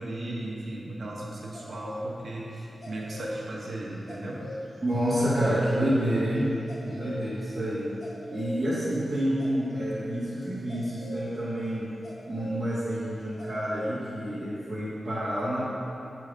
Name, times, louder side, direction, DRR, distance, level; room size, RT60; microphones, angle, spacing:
voice 1, 0.0-4.5, right 1 dB, 60° right, -4 dB, 1.0 m, -36 dB
sound 1, 1.5-2.1 2.5-11.3 12.0-12.6 12.9-13.0 13.4-13.9, left 1 dB, 50° left, 1.0 m, -42 dB
voice 2, 4.8-6.5 6.8-7.9 8.3-11.9 12.3-15.6, right 1 dB, 30° right, -12 dB, 1.3 m, -28 dB
6.7 x 3.3 x 5.0 m, 2.9 s
wide cardioid pair, 140°, 0 cm